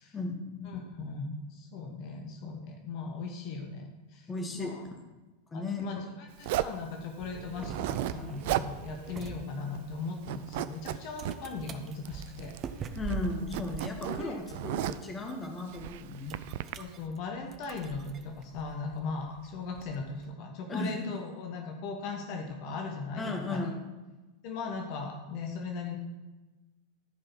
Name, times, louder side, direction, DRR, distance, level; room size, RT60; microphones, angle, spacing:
voice 1, 0.1-0.7 4.3-4.7 5.5-5.8 13.0-16.4 20.7-21.0 23.2-23.9, left 3 dB, 15° left, 2 dB, 1.8 m, -35 dB
voice 2, 0.6-4.8 5.5-12.9 14.1-14.6 16.8-23.7 24.4-26.0, left 4 dB, 45° left, 2 dB, 1.4 m, -38 dB
Zipper (clothing), 6.4-6.8 7.6-8.2 8.4-8.7 9.1-9.2 9.5-9.9 10.2-11.4 12.1-12.7 12.9-15.1 15.7-16.7, right 14 dB, 50° right, 0.4 m, -34 dB
sound 1, 7.2-20.3, right 7 dB, 30° right, 0.8 m, -44 dB
14.0 x 5.4 x 6.0 m, 1.1 s
figure-of-eight pair, 90°, 0 cm